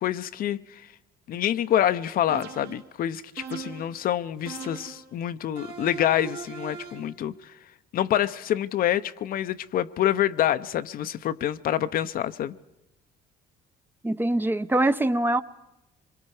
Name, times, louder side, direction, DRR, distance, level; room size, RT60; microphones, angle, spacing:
voice 1, 0.0-0.8 1.3-7.5 7.9-12.5, left 11 dB, 60° left, 0.7 m, -27 dB
sound 1, 2.3-2.9 3.4-4.0 4.5-5.1 5.6-7.1, right 6 dB, 75° right, 2.9 m, -39 dB
voice 2, 14.0-15.4, right 1 dB, 10° right, 0.7 m, -23 dB
26.0 x 23.0 x 4.8 m
cardioid pair, 110°, 17 cm